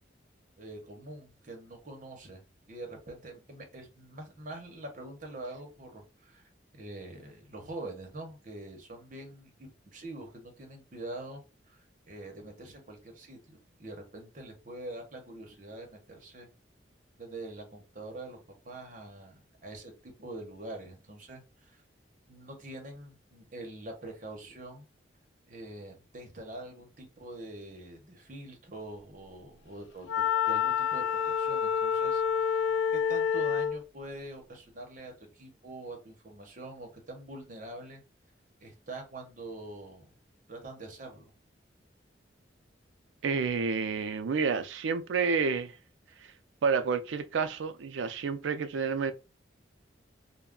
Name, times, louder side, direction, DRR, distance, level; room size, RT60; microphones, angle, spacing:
voice 1, 0.6-11.4 11.7-16.5 17.2-18.4 18.6-21.8 22.3-24.9 25.5-32.6 32.9-38.0 38.6-40.1 40.5-41.3, right 2 dB, 45° right, 0.8 m, -45 dB
Wind instrument woodwind instrument, 30.1-33.8, left 7 dB, 90° left, 0.3 m, -28 dB
voice 2, 43.2-45.7 46.6-49.1, right 5 dB, 85° right, 0.4 m, -29 dB
2.3 x 2.1 x 3.6 m
head